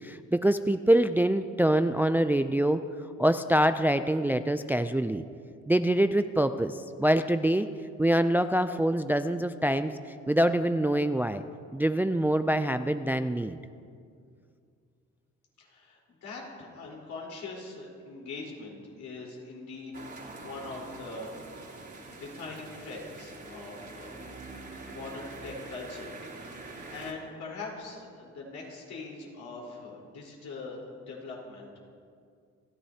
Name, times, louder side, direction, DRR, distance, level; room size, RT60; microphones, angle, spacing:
voice 1, 0.0-2.8 3.2-5.2 5.7-7.7 8.0-9.9 10.3-11.4 11.7-13.6, right 1 dB, 5° right, 10 dB, 0.4 m, -25 dB
voice 2, 15.6-20.1 20.4-21.3 21.8-24.2 24.9-31.7, left 3 dB, 70° left, -3 dB, 4.3 m, -42 dB
sound 1, 19.9-27.1, right 3 dB, 35° right, 3.1 m, -45 dB
29.0 x 11.0 x 2.9 m, 2.3 s
cardioid pair, 90°, 30 cm